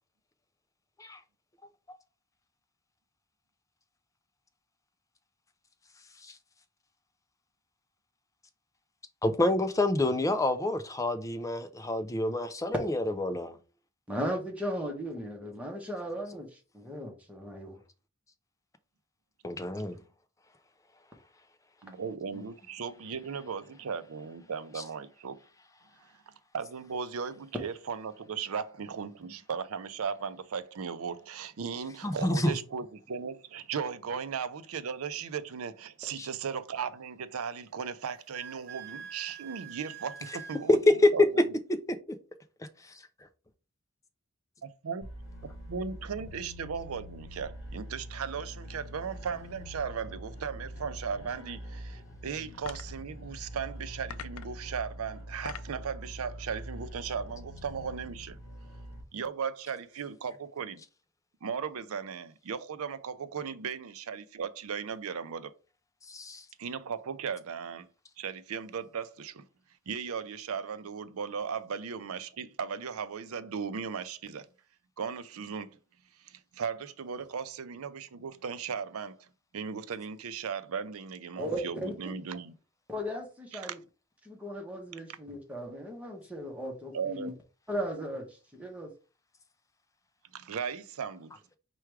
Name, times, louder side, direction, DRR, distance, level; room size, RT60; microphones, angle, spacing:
voice 1, 9.2-13.6 19.4-20.0 24.8-24.9 32.0-32.5 36.2-36.3 40.7-40.8 66.1-66.4, left 1 dB, 15° left, 0.4 m, -29 dB
voice 2, 14.1-17.8 81.4-82.1 82.9-83.8 84.2-87.3 87.7-88.9, equal, 5° right, 0.9 m, -37 dB
voice 3, 21.8-25.4 26.5-40.8 41.1-41.4 44.6-45.1 45.4-58.4 59.1-60.8 61.4-65.5 66.6-67.9 68.2-69.5 69.9-74.5 75.0-75.8 76.2-79.3 79.5-82.5 83.6-83.7 86.9-87.3 90.3-91.3, right 6 dB, 85° right, 0.5 m, -37 dB
Wind instrument woodwind instrument, 38.1-40.6, right 7 dB, 40° right, 1.0 m, -45 dB
sound 1, 45.0-59.0, equal, 45° left, 1.6 m, -44 dB
sound 2, 52.6-53.0 54.1-54.6 55.2-55.8, left 8 dB, 85° left, 0.4 m, -43 dB
4.7 x 2.3 x 4.6 m
head